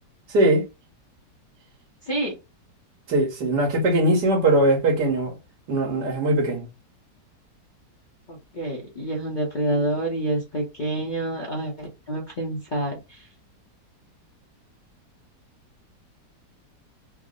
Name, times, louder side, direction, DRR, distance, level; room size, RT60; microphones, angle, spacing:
voice 1, 0.3-0.6 3.1-5.3 5.7-6.7, right 1 dB, 75° right, 1.7 m, -20 dB
voice 2, 2.0-2.3 8.3-13.3, right 1 dB, 40° left, 0.7 m, -28 dB
3.5 x 2.0 x 3.6 m
omnidirectional pair, 1.8 m